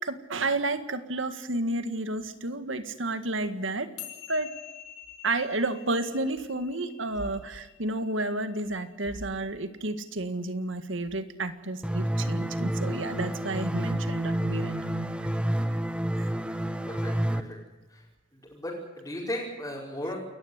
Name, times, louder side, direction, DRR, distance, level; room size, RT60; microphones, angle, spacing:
voice 1, 0.0-3.9 4.3-4.5 5.2-15.4 16.1-16.3, right 2 dB, 70° right, 9 dB, 1.9 m, -31 dB
sound 1, 4.0-10.5, left 11 dB, 75° left, 4.2 m, -48 dB
sound 2, 11.8-17.4, right 1 dB, 5° right, 1.2 m, -29 dB
voice 2, 16.8-17.6 17.9-18.0 18.3-20.1, left 1 dB, 15° left, -6 dB, 5.4 m, -36 dB
28.5 x 14.5 x 9.7 m, 1.1 s
head